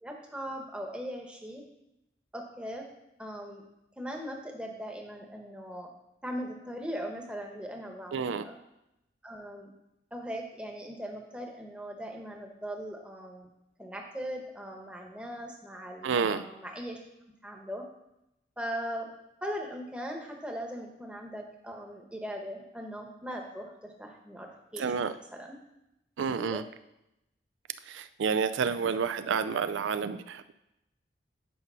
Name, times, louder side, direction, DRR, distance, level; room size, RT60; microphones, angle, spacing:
voice 1, 0.0-1.6 2.3-2.9 3.2-3.6 4.0-5.9 6.2-8.6 9.2-9.7 10.1-13.5 13.8-17.0 17.4-17.8 18.6-19.1 19.4-25.5 26.4-26.6, equal, 5° right, 1 dB, 1.0 m, -39 dB
voice 2, 8.1-8.4 16.0-16.4 24.8-25.1 26.2-26.6 27.9-30.5, right 6 dB, 90° right, 12 dB, 0.4 m, -29 dB
8.5 x 5.4 x 5.5 m, 0.88 s
head